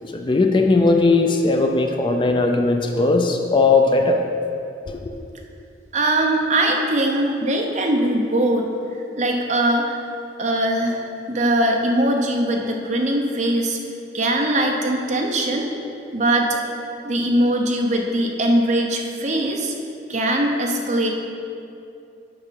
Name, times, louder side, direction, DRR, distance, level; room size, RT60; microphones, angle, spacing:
voice 1, 0.0-4.2 4.9-5.0, left 3 dB, 25° left, 3 dB, 0.5 m, -18 dB
voice 2, 5.9-8.7 9.1-10.0 10.4-13.8 14.1-15.7 16.1-16.6 17.0-19.7 20.1-21.1, right 1 dB, 40° right, 1 dB, 0.8 m, -21 dB
7.8 x 5.1 x 5.8 m, 2.6 s
head